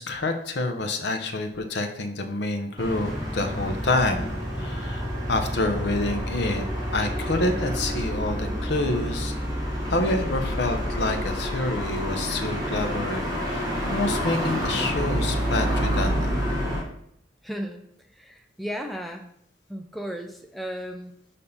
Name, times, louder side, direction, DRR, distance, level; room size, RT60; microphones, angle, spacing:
voice 1, 0.0-4.3 4.6-6.6 6.9-9.4 9.9-13.6 13.9-16.3, left 2 dB, 65° left, 5 dB, 0.7 m, -27 dB
sound 1, 2.8-16.8, equal, 20° right, 1.3 m, -28 dB
voice 2, 17.4-17.8 18.1-19.3 19.7-21.1, equal, ahead, 3 dB, 0.4 m, -35 dB
6.7 x 2.8 x 5.5 m, 0.72 s
head